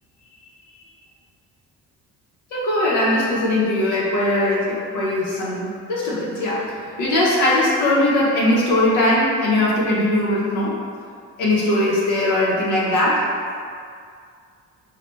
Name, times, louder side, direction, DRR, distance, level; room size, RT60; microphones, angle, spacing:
voice 1, 2.5-6.6 7.0-10.7 11.4-13.2, left 1 dB, 85° left, -6 dB, 0.7 m, -20 dB
3.2 x 2.1 x 3.0 m, 2.2 s
cardioid pair, 90°, 30 cm